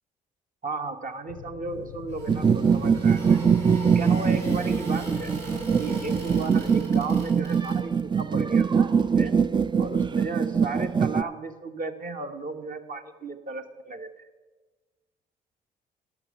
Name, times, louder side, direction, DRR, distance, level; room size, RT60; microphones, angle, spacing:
voice 1, 0.6-3.4 3.9-5.3 5.8-9.3 9.8-14.1, right 3 dB, 45° right, 6 dB, 1.2 m, -35 dB
sound 1, 1.3-6.8, left 10 dB, 85° left, 0.6 m, -42 dB
sound 2, 1.7-8.2, right 3 dB, 90° right, 2.8 m, -41 dB
sound 3, 2.3-11.2, right 6 dB, 25° right, 0.4 m, -23 dB
12.0 x 6.4 x 6.8 m, 1.3 s
hypercardioid pair, 50°, 20 cm